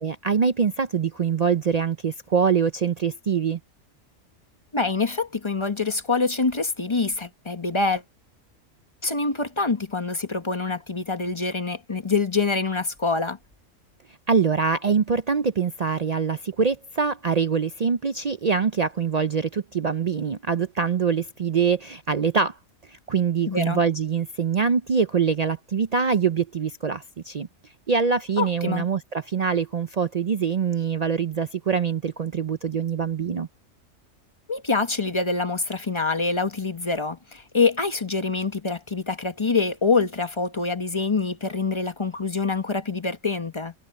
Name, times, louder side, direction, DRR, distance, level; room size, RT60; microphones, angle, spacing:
voice 1, 0.0-3.6 14.3-22.6 23.1-27.5 27.9-33.5, right 6 dB, 60° right, 0.4 m, -24 dB
voice 2, 4.7-8.0 9.0-13.4 23.5-23.8 28.4-28.9 34.5-43.7, left 4 dB, 25° left, 1.0 m, -25 dB
omnidirectional pair, 1.4 m